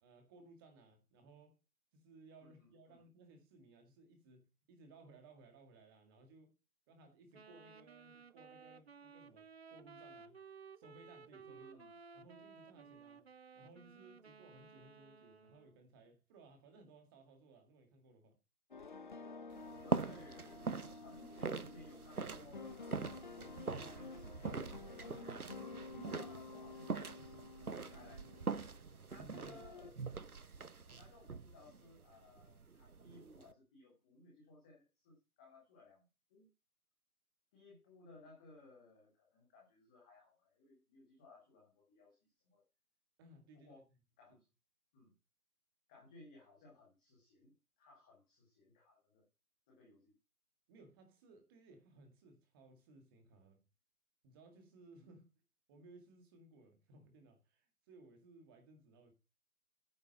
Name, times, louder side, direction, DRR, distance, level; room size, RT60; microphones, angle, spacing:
voice 1, 0.0-1.6 1.9-6.6 6.9-10.4 10.8-11.8 12.1-13.2 13.5-18.4 29.2-29.6 29.9-30.0 43.2-43.7 50.7-53.6 54.2-55.3 55.7-59.1, right 3 dB, 15° right, 2.0 m, -61 dB
voice 2, 2.4-3.0 11.4-11.9 19.8-23.5 23.9-25.3 25.6-28.3 29.1-30.0 30.9-36.0 36.3-36.5 37.5-42.2 42.5-42.6 43.5-43.8 44.2-44.4 44.9-45.1 45.9-49.2 49.7-50.1, left 2 dB, 5° left, 0.8 m, -61 dB
Wind instrument woodwind instrument, 7.3-15.8, right 5 dB, 45° right, 0.7 m, -57 dB
sound 1, 18.7-29.0 29.3-29.9, left 4 dB, 35° left, 0.8 m, -52 dB
sound 2, 19.5-33.5, right 5 dB, 80° right, 1.0 m, -43 dB
9.5 x 6.9 x 5.3 m
figure-of-eight pair, 145°, 43 cm